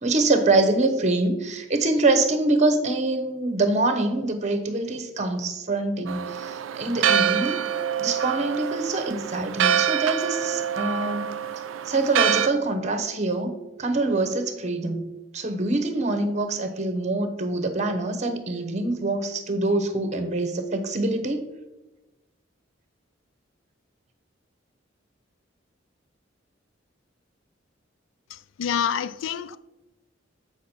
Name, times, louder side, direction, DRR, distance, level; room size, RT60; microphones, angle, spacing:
voice 1, 0.0-7.6 8.0-11.3 11.9-13.5 13.8-15.1 15.3-21.4, right 2 dB, 35° right, 0.9 m, -25 dB
Church bell, 6.1-12.5, right 8 dB, 85° right, 0.4 m, -26 dB
voice 2, 28.3-29.6, left 8 dB, 80° left, 0.4 m, -28 dB
8.3 x 4.9 x 4.3 m
head